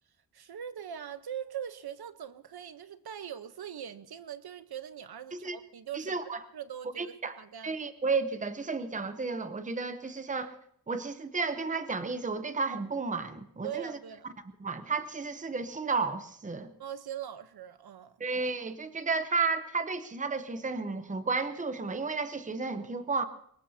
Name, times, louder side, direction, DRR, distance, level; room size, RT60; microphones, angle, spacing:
voice 1, 0.3-7.8 13.6-14.4 16.8-18.2, right 9 dB, 85° right, 1.0 m, -41 dB
voice 2, 5.9-6.4 7.0-7.4 7.6-10.5 10.9-14.0 14.6-16.7 18.2-23.2, right 4 dB, 20° right, 0.8 m, -32 dB
24.0 x 20.5 x 2.8 m
wide cardioid pair, 170°, 37 cm